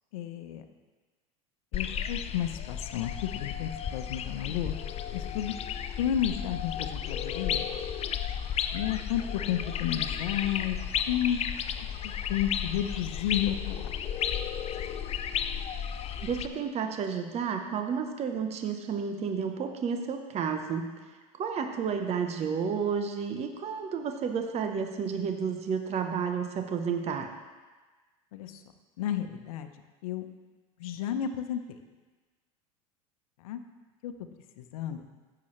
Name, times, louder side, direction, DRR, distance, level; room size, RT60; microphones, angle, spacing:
voice 1, 0.1-0.6 1.7-4.8 5.1-5.5 6.0-7.7 8.7-10.8 11.1-11.4 12.3-13.9 28.3-28.5 29.0-29.7 30.0-30.2 30.8-31.6 33.4-33.6 34.0-34.1 34.6-35.0, left 10 dB, 75° left, 8 dB, 0.9 m, -31 dB
sound 1, 1.7-16.5, left 8 dB, 35° left, 0.6 m, -33 dB
voice 2, 16.2-20.9 21.4-27.3, right 6 dB, 35° right, 6 dB, 1.0 m, -31 dB
15.5 x 6.9 x 3.2 m, 1.3 s
hypercardioid pair, 90°, 18 cm